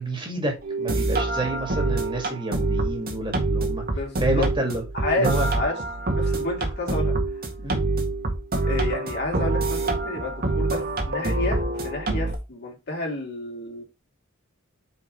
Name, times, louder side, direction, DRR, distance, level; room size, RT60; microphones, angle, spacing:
voice 1, 0.0-3.8 4.2-4.8 5.2-5.5 7.6-7.8, right 1 dB, 25° right, 2.2 m, -29 dB
sound 1, 0.6-12.3, right 2 dB, 45° right, 1.8 m, -26 dB
voice 2, 3.9-4.5 4.9-5.8 6.1-7.2 8.6-13.8, left 2 dB, 55° left, 2.7 m, -30 dB
5.2 x 4.7 x 5.2 m
head